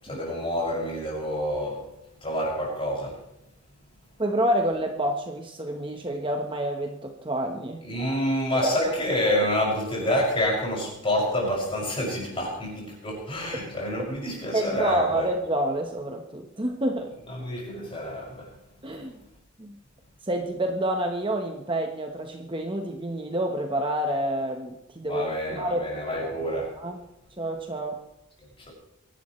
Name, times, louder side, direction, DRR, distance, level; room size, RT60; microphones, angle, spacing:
voice 1, 0.0-1.9 2.2-3.2 7.8-15.3 17.3-18.6 25.0-26.8 28.4-28.7, equal, 25° left, -3 dB, 6.4 m, -28 dB
voice 2, 4.2-7.8 8.5-8.7 14.5-17.1 18.8-19.2 19.6-19.8 20.2-25.8 26.2-26.3 26.8-27.0 27.4-28.0, right 1 dB, 25° right, 3 dB, 1.2 m, -28 dB
23.5 x 12.0 x 3.2 m, 0.83 s
head